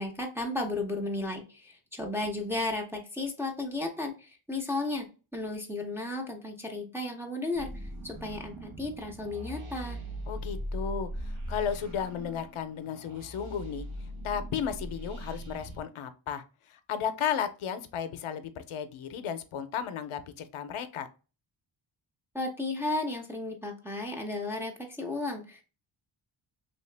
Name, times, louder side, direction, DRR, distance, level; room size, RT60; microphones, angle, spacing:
voice 1, 0.0-5.1 5.3-7.7 8.0-10.0 22.3-25.6, left 2 dB, 5° right, 0 dB, 0.5 m, -34 dB
sound 1, 7.5-15.8, equal, 70° right, 1.0 m, -40 dB
voice 2, 10.3-21.1, left 8 dB, 80° left, 11 dB, 0.6 m, -34 dB
3.2 x 2.8 x 3.2 m, 0.34 s
wide cardioid pair, 165°, 49 cm